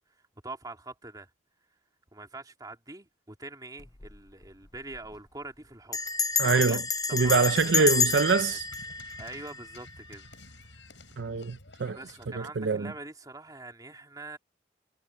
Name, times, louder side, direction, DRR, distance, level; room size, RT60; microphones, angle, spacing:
voice 1, 0.4-1.3 2.1-6.2 6.4-6.8 7.1-7.9 8.5-8.6 9.2-10.3 10.6-10.9 11.9-14.4, right 2 dB, 20° right, 2.9 m, -44 dB
Bell, 3.8-4.2 4.4-4.5 4.8-5.1 5.9-10.0, left 5 dB, 20° left, 0.6 m, -30 dB
voice 2, 6.4-6.8 7.1-8.7 11.2-12.0 12.4-12.9, right 4 dB, 75° right, 0.6 m, -24 dB
sound 1, 7.1-12.3, left 2 dB, 80° left, 6.7 m, -51 dB
head